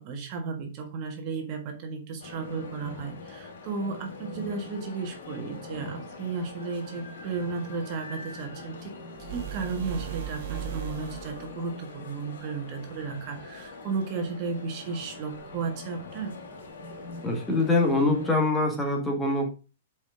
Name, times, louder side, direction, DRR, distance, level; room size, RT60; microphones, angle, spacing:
voice 1, 0.0-16.3, right 4 dB, 40° right, 4 dB, 1.5 m, -34 dB
sound 1, 2.2-18.4, left 3 dB, 75° left, 2.8 m, -43 dB
sound 2, 9.1-11.6, right 13 dB, 60° right, 0.9 m, -37 dB
voice 2, 17.2-19.5, left 2 dB, 5° left, 0 dB, 1.8 m, -24 dB
5.4 x 5.0 x 4.9 m, 0.32 s
hypercardioid pair, 145°, 0 cm